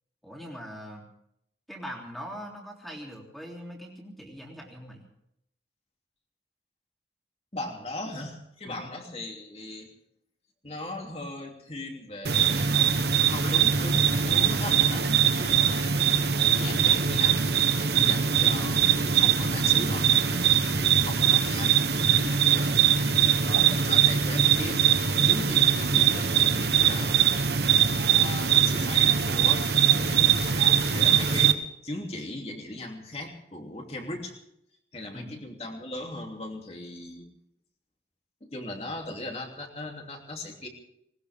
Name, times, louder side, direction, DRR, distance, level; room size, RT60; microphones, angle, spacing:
voice 1, 0.2-1.1 1.7-5.0 8.6-8.9 17.9-18.2 23.0-23.3 35.1-35.3, equal, ahead, -1 dB, 3.3 m, -41 dB
voice 2, 7.5-9.9 10.6-16.0 16.5-17.4 18.0-22.7 23.4-24.8 25.2-27.6 28.2-34.3 34.9-37.3 38.4-40.7, left 1 dB, 35° left, 1 dB, 2.9 m, -38 dB
sound 1, 12.2-31.5, right 8 dB, 65° right, 1.1 m, -22 dB
19.5 x 19.5 x 3.6 m, 0.76 s
head